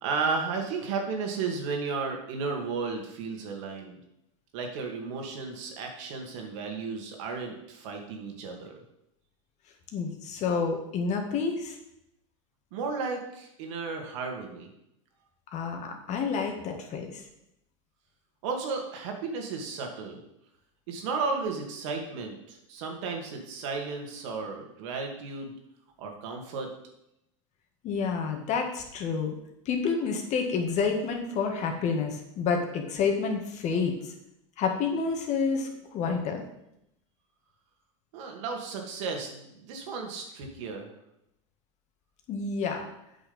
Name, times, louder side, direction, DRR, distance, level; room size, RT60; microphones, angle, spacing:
voice 1, 0.0-4.0 4.5-8.8 12.7-14.7 18.4-20.2 20.9-25.5 26.0-26.7 38.1-40.9, right 4 dB, 65° right, 2 dB, 2.3 m, -34 dB
voice 2, 9.9-11.8 15.5-17.2 27.8-29.4 29.7-34.1 34.6-36.4 42.3-42.9, left 5 dB, 45° left, 3 dB, 2.0 m, -29 dB
8.4 x 6.2 x 5.5 m, 0.81 s
hypercardioid pair, 100°, 17 cm